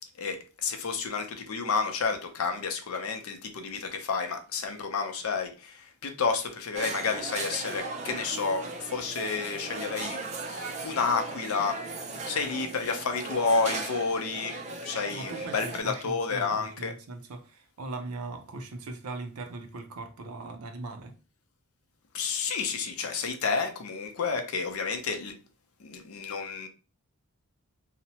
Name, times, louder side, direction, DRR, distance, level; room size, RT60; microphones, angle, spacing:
voice 1, 0.2-11.8 12.3-14.6 14.8-16.9 22.1-25.4 25.8-26.7, left 5 dB, 75° left, 0.6 m, -30 dB
sound 1, 6.8-15.8, right 3 dB, 30° right, 0.4 m, -37 dB
voice 2, 15.1-21.1, right 2 dB, 85° right, 0.5 m, -40 dB
2.8 x 2.1 x 2.8 m
head